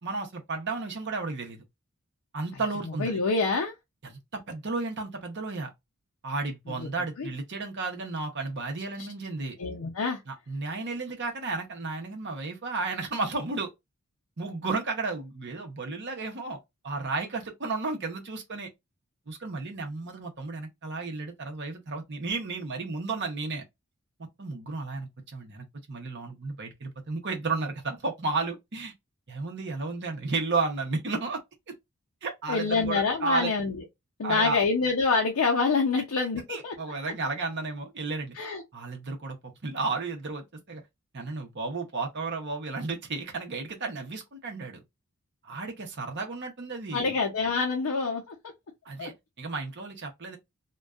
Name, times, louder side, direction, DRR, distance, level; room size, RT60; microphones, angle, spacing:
voice 1, 0.0-1.6 2.3-3.2 4.0-5.7 6.2-9.5 10.3-13.7 14.4-16.6 16.8-18.7 19.3-23.6 24.4-28.9 29.3-31.4 32.2-33.5 34.2-34.6 36.5-38.3 38.7-40.8 41.1-44.8 45.4-47.2 48.8-50.4, right 3 dB, 50° right, 0.8 m, -33 dB
voice 2, 3.0-3.7 6.7-6.9 7.2-7.3 9.6-10.2 32.5-33.8 34.2-36.7 38.4-38.6 46.9-48.3 49.0-49.1, left 4 dB, 75° left, 0.5 m, -26 dB
2.5 x 2.2 x 2.3 m
head